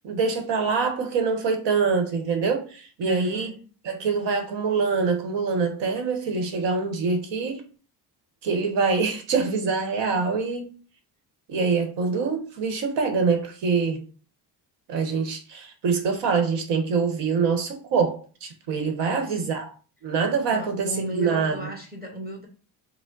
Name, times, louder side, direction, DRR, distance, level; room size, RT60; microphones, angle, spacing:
voice 1, 0.0-3.5 3.8-7.6 8.4-10.7 11.5-14.0 14.9-19.7 20.0-21.6, right 5 dB, 90° right, 1.1 m, -25 dB
voice 2, 3.0-3.6 19.1-19.4 20.5-22.5, right 1 dB, 20° right, 0.9 m, -35 dB
4.9 x 2.0 x 3.8 m
cardioid pair, 135°, 42 cm